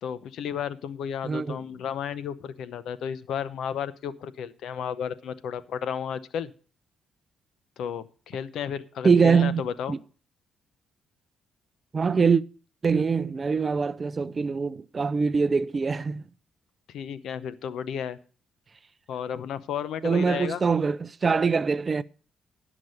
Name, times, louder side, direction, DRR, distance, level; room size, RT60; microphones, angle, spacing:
voice 1, 0.0-6.5 7.8-10.0 16.9-18.2 19.1-20.6, left 8 dB, 75° left, 0.7 m, -33 dB
voice 2, 1.2-1.6 9.0-9.6 9.9-10.0 11.9-12.4 12.8-16.2 20.0-22.0, right 5 dB, 35° right, 0.4 m, -23 dB
11.0 x 6.0 x 6.5 m
cardioid pair, 90°, 0 cm